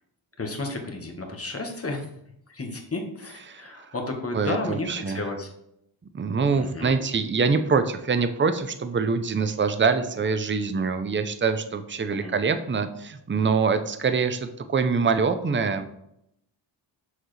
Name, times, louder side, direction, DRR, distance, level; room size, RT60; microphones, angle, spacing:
voice 1, 0.4-2.1 2.5-5.5 6.5-7.0 12.1-12.3, left 2 dB, 30° left, 2 dB, 1.3 m, -32 dB
voice 2, 3.5-3.9 4.3-5.2 6.1-15.9, right 5 dB, 25° right, 9 dB, 0.6 m, -24 dB
7.1 x 6.4 x 3.2 m, 0.78 s
wide cardioid pair, 110°, 45 cm